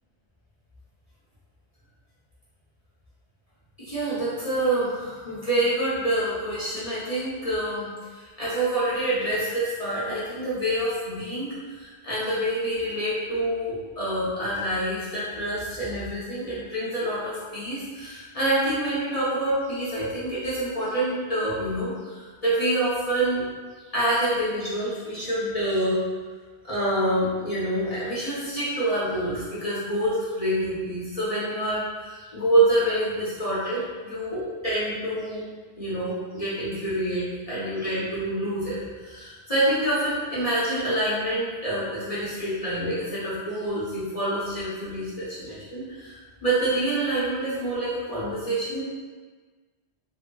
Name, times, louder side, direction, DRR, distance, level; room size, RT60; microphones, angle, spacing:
voice 1, 3.8-7.9 8.4-23.4 23.9-26.0 26.6-35.4 35.8-48.8, right 1 dB, 40° left, -10 dB, 0.7 m, -27 dB
3.3 x 2.7 x 2.2 m, 1.4 s
omnidirectional pair, 1.1 m